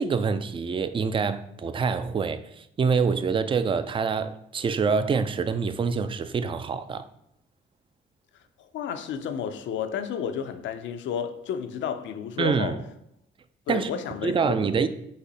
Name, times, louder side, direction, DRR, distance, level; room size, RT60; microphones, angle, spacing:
voice 1, 0.0-7.1 12.4-12.8 13.7-13.9 14.2-14.9, right 5 dB, 25° right, 0.3 m, -26 dB
voice 2, 8.6-12.8 13.7-14.7, left 8 dB, 70° left, 0.5 m, -32 dB
4.1 x 2.7 x 4.0 m
supercardioid pair, 65°, 20 cm